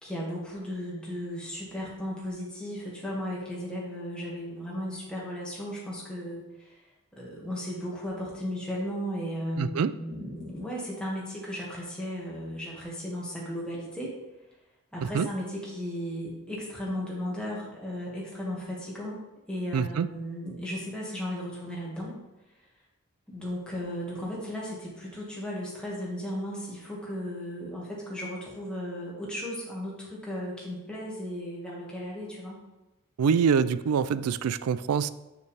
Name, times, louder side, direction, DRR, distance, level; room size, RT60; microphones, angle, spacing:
voice 1, 0.0-6.8 7.1-14.1 14.9-19.2 19.5-22.2 23.3-32.6, equal, 5° left, -5 dB, 2.0 m, -35 dB
voice 2, 9.6-9.9 15.1-15.3 19.7-20.1 33.2-35.1, right 6 dB, 90° right, 15 dB, 0.4 m, -25 dB
7.4 x 6.5 x 3.4 m, 1.0 s
head